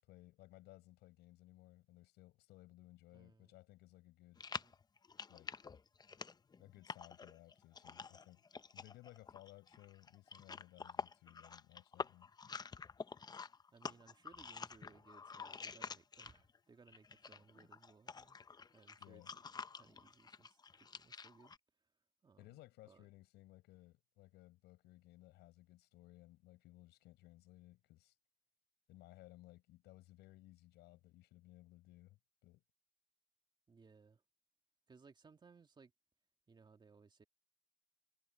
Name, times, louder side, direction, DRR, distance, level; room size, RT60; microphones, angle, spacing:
voice 1, 0.0-4.4 5.3-5.6 6.6-8.4 8.7-12.3 19.0-19.3 22.4-28.1 28.9-32.2 32.4-32.6, left 17 dB, 85° left, 7.4 m, -60 dB
voice 2, 3.1-3.5 4.5-4.7 13.7-18.4 18.7-19.4 19.7-21.5 22.2-23.1 33.7-34.2 34.9-35.9 36.5-37.2, right 5 dB, 25° right, 2.6 m, -64 dB
sound 1, 4.4-16.6 16.9-21.6, left 5 dB, 25° left, 0.7 m, -49 dB
cardioid pair, 110°, 17 cm